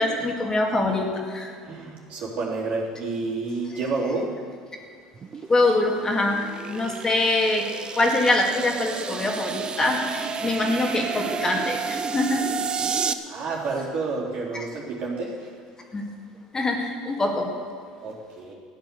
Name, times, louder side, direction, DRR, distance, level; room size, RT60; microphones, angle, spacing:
voice 1, 0.0-1.5 5.5-7.7 8.0-12.4 14.5-14.6 15.9-16.1 16.5-17.5, left 2 dB, 25° left, 1 dB, 2.2 m, -24 dB
voice 2, 1.6-4.3 12.9-13.0 13.3-15.5 18.0-18.5, right 3 dB, 60° right, -4 dB, 3.7 m, -29 dB
sound 1, 5.1-13.1, right 6 dB, 35° right, 0.7 m, -31 dB
13.5 x 9.0 x 7.0 m, 2.2 s
supercardioid pair, 85°, 3 cm